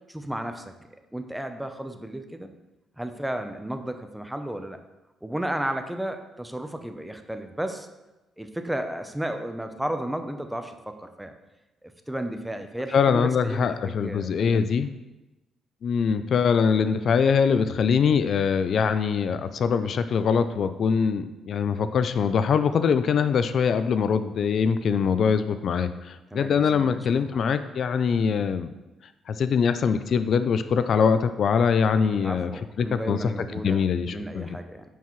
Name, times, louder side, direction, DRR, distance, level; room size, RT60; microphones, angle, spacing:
voice 1, 0.1-0.7 1.1-2.5 3.0-4.8 5.2-7.9 8.4-11.3 11.8-14.6 26.3-27.4 32.1-33.8 34.1-34.8, right 1 dB, 5° right, 7 dB, 0.6 m, -33 dB
voice 2, 12.9-14.9 15.8-28.7 29.3-32.5 32.8-33.3 33.6-34.5, left 6 dB, 60° left, 11 dB, 0.3 m, -23 dB
9.0 x 4.6 x 3.1 m, 1.0 s
cardioid pair, 90°, 0 cm